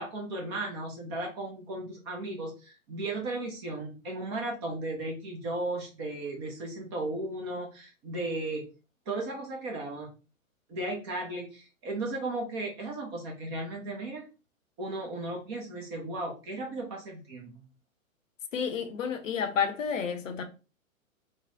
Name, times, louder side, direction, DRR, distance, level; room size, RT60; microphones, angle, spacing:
voice 1, 0.0-8.7 9.1-10.1 10.7-14.3 14.8-17.6, right 2 dB, 20° right, 0.5 m, -35 dB
voice 2, 18.5-20.4, left 7 dB, 65° left, 0.7 m, -30 dB
3.1 x 2.0 x 2.6 m
figure-of-eight pair, 110°, 42 cm